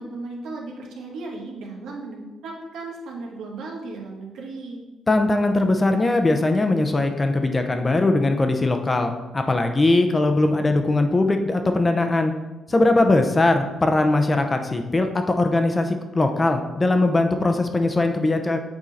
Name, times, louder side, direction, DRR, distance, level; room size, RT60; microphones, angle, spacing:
voice 1, 0.0-4.8, right 3 dB, 80° right, -1 dB, 1.4 m, -35 dB
voice 2, 5.1-12.3 12.7-18.6, left 2 dB, 25° left, 6 dB, 0.7 m, -20 dB
7.5 x 3.7 x 4.1 m, 1.1 s
cardioid pair, 90°, 0 cm